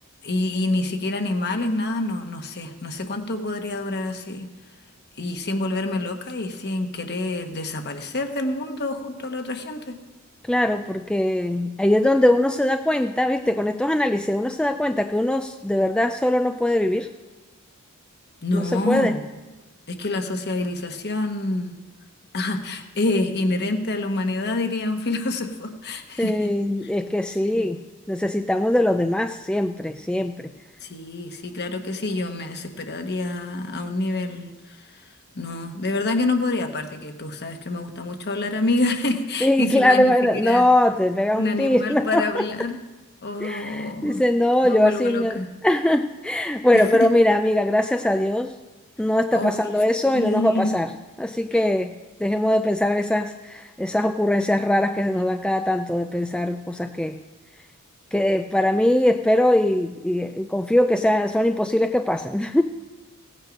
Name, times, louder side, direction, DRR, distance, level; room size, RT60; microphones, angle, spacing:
voice 1, 0.2-4.5 5.1-10.0 18.4-19.2 19.9-21.7 22.3-26.5 26.8-26.9 27.4-27.7 30.8-35.1 35.3-40.7 41.3-42.8 43.2-44.2 44.6-45.5 46.7-47.1 49.3-49.6 50.0-50.8 51.5-51.6, left 2 dB, 50° left, 5 dB, 1.2 m, -27 dB
voice 2, 10.5-17.1 18.5-19.1 26.2-27.8 28.1-30.5 39.4-42.5 43.4-48.5 49.0-50.9 51.2-51.9 52.2-57.1 58.1-62.6, left 1 dB, 5° left, 7 dB, 0.3 m, -21 dB
16.0 x 9.0 x 5.2 m, 1.2 s
head